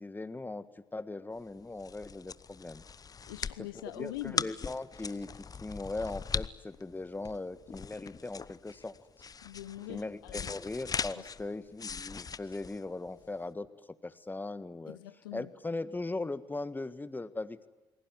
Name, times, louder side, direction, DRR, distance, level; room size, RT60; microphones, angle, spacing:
voice 1, 0.0-2.8 3.7-9.1 9.9-15.0 15.3-17.7, left 2 dB, 15° left, 1.6 m, -39 dB
sound 1, 1.5-13.4, left 5 dB, 35° left, 0.9 m, -40 dB
voice 2, 3.3-4.5 9.4-10.5 11.2-11.3 14.9-15.5, left 14 dB, 85° left, 0.9 m, -43 dB
28.0 x 20.5 x 9.5 m
hypercardioid pair, 55°, 11 cm